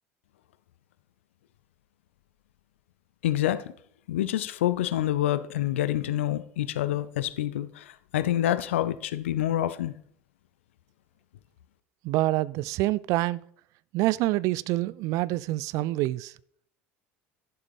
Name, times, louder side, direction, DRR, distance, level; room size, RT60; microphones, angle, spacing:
voice 1, 3.2-3.6 4.1-9.9, left 12 dB, 65° left, 0.6 m, -27 dB
voice 2, 12.0-13.4 13.9-16.3, right 17 dB, 50° right, 0.4 m, -26 dB
12.0 x 11.5 x 3.4 m
figure-of-eight pair, 70°, 7 cm